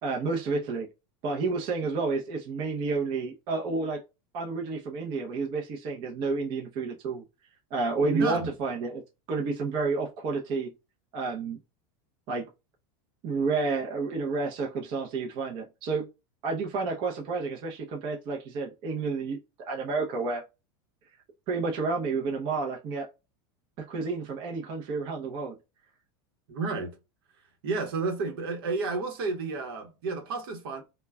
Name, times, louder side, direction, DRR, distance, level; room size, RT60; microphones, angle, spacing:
voice 1, 0.0-0.9 1.2-4.0 4.3-7.2 7.7-9.0 9.3-10.7 11.1-11.6 12.3-12.5 13.2-16.1 16.4-19.4 19.6-20.4 21.5-23.1 23.8-25.6, right 4 dB, 40° right, 0.6 m, -30 dB
voice 2, 8.0-8.5 26.5-27.0 27.6-30.8, right 4 dB, 75° right, 0.9 m, -31 dB
2.3 x 2.1 x 3.3 m
supercardioid pair, 155°, 12 cm